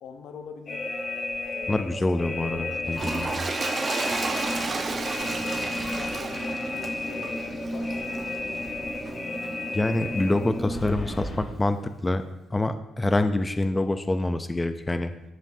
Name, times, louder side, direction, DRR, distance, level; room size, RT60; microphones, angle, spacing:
voice 1, 0.0-0.9 1.5-4.3 5.9-8.6, left 6 dB, 80° left, 6 dB, 0.9 m, -45 dB
sound 1, 0.7-11.5, left 2 dB, 45° left, 2.3 m, -34 dB
voice 2, 1.7-3.3 9.7-12.2 12.5-15.1, left 2 dB, 15° left, 9 dB, 0.5 m, -26 dB
Toilet flush, 2.9-8.4 9.0-9.2, right 3 dB, 40° right, 0.9 m, -32 dB
sound 2, 4.1-11.2, right 1 dB, 5° right, 1.0 m, -36 dB
13.5 x 5.2 x 2.7 m, 0.92 s
cardioid pair, 90°, 0 cm